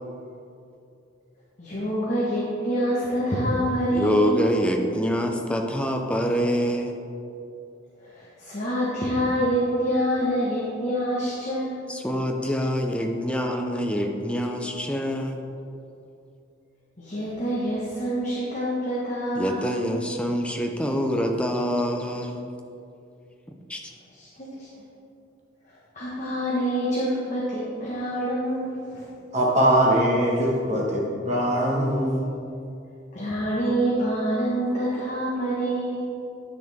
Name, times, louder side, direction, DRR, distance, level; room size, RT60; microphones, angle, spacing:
voice 1, 1.6-4.4 8.0-11.8 17.0-19.6 24.1-24.7 25.9-29.1 33.1-36.1, equal, 40° left, -7 dB, 1.3 m, -26 dB
voice 2, 3.9-7.0 11.9-15.4 19.4-22.4 23.7-23.8, equal, 5° left, 3 dB, 0.6 m, -25 dB
voice 3, 29.3-32.2, right 1 dB, 35° right, -4 dB, 1.5 m, -22 dB
9.9 x 6.5 x 3.6 m, 2.6 s
head